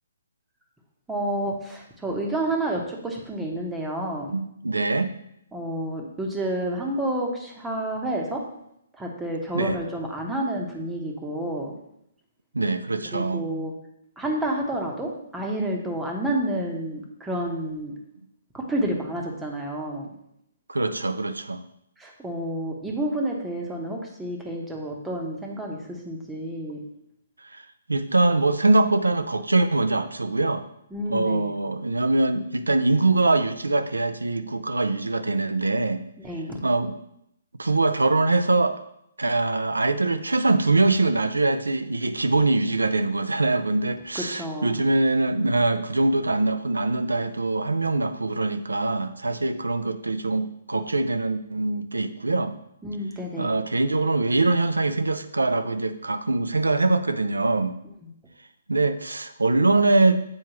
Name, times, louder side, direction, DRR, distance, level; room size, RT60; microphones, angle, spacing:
voice 1, 1.1-4.3 5.5-8.4 8.9-11.7 13.0-13.7 14.2-18.0 18.5-20.1 22.0-26.8 30.9-31.6 36.2-36.6 44.1-44.8 52.8-53.6 58.0-58.1, right 1 dB, 10° right, 0 dB, 1.0 m, -29 dB
voice 2, 4.3-5.1 9.5-9.8 12.5-13.4 20.7-21.6 27.5-27.6 27.9-30.7 31.1-36.0 36.6-36.9 37.6-38.8 39.2-52.5 53.4-57.8 58.7-60.3, right 2 dB, 85° right, 11 dB, 0.5 m, -23 dB
7.6 x 4.5 x 3.0 m, 0.77 s
figure-of-eight pair, 130°, 0 cm